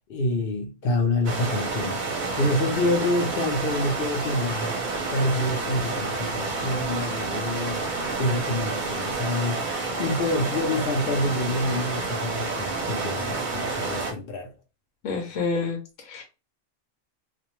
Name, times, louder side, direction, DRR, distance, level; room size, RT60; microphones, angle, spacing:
voice 1, 0.1-2.0 2.4-4.8 5.1-7.8 8.2-9.6 10.0-14.5, left 1 dB, 60° left, 0.7 m, -27 dB
sound 1, 1.2-14.1, right 3 dB, 50° right, 0.7 m, -29 dB
voice 2, 15.0-15.8 16.1-16.2, left 4 dB, 90° left, 1.0 m, -27 dB
2.4 x 2.1 x 2.9 m
omnidirectional pair, 1.3 m